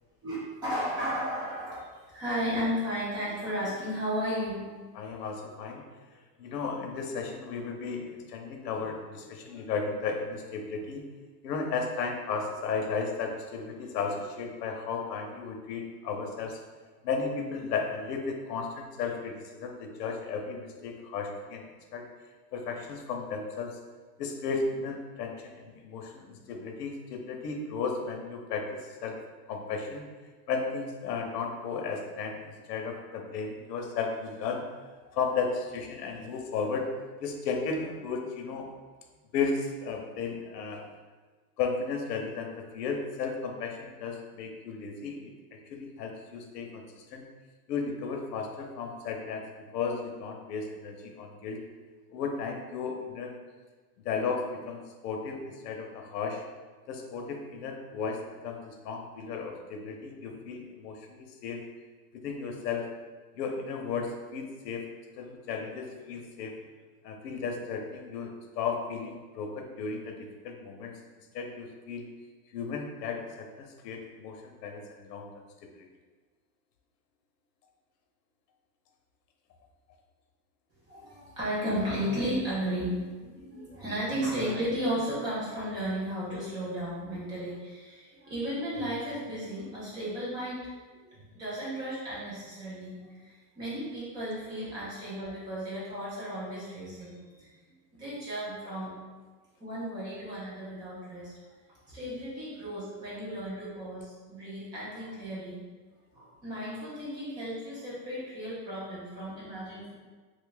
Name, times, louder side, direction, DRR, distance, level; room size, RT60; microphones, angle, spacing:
voice 1, 0.2-4.7 80.9-90.7 90.9-97.5 98.0-98.9 99.6-101.3 101.9-105.6 106.1-109.9, equal, 10° right, -8 dB, 0.4 m, -34 dB
voice 2, 4.9-5.8 6.4-11.0 11.4-16.6 17.0-22.1 22.5-23.8 24.2-29.2 29.5-30.0 30.5-34.6 35.0-36.9 37.2-38.7 39.3-40.9 41.6-47.2 47.7-49.5 49.7-51.6 52.1-53.3 54.0-56.4 56.9-61.6 62.1-62.9 63.3-64.8 65.2-66.6 67.0-70.2 70.4-71.0 71.3-72.1 72.5-75.4 75.7-75.8, left 5 dB, 85° left, 3 dB, 0.8 m, -34 dB
3.2 x 2.5 x 3.8 m, 1.4 s
supercardioid pair, 160°, 48 cm